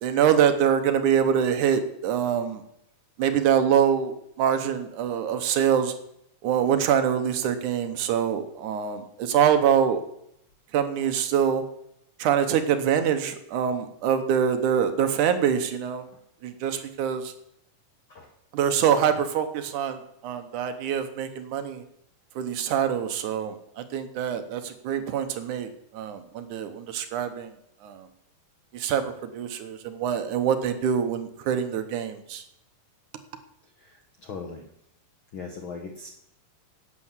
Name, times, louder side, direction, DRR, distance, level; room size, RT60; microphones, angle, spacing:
voice 1, 0.0-2.6 3.2-5.9 6.4-10.0 10.7-11.6 12.2-16.1 16.4-17.3 18.5-21.8 22.4-27.5 27.8-28.1 28.7-32.4, right 8 dB, 70° right, 9 dB, 2.3 m, -25 dB
voice 2, 33.8-34.6 35.3-36.1, left 4 dB, 65° left, 4 dB, 1.2 m, -39 dB
11.5 x 8.3 x 7.3 m, 0.75 s
omnidirectional pair, 3.9 m